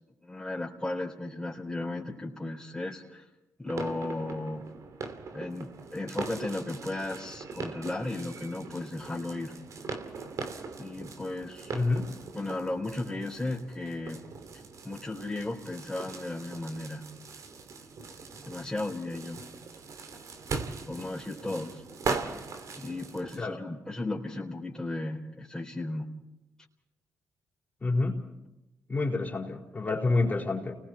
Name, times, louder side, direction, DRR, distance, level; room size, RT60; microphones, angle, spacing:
voice 1, 0.2-3.2 3.6-4.6 5.3-9.5 10.8-11.8 12.3-14.2 14.8-17.0 18.5-19.4 20.9-21.8 22.8-26.1, left 2 dB, 10° left, -3 dB, 3.9 m, -35 dB
sound 1, 3.7-23.5, right 4 dB, 60° right, 2.6 m, -40 dB
voice 2, 11.7-12.1 23.4-23.6 27.8-28.1 28.9-30.8, left 3 dB, 25° left, 1 dB, 4.5 m, -28 dB
30.0 x 20.5 x 4.5 m, 0.99 s
supercardioid pair, 60°, 6 cm